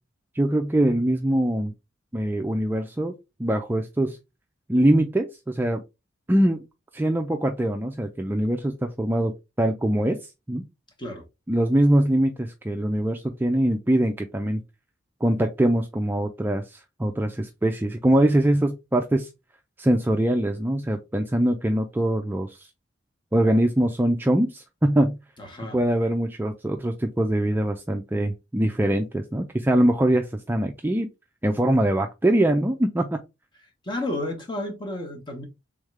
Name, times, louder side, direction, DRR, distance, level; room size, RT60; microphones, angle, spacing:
voice 1, 0.3-1.7 2.1-3.1 3.4-4.2 4.7-5.8 6.3-6.6 6.9-10.2 10.5-10.6 11.5-14.6 15.2-19.3 19.8-22.7 23.3-25.2 25.7-31.1 31.4-33.2, right 1 dB, 10° right, 0.3 m, -23 dB
voice 2, 25.4-25.8 33.8-35.5, left 1 dB, 25° left, 1.0 m, -31 dB
3.6 x 3.5 x 3.2 m
head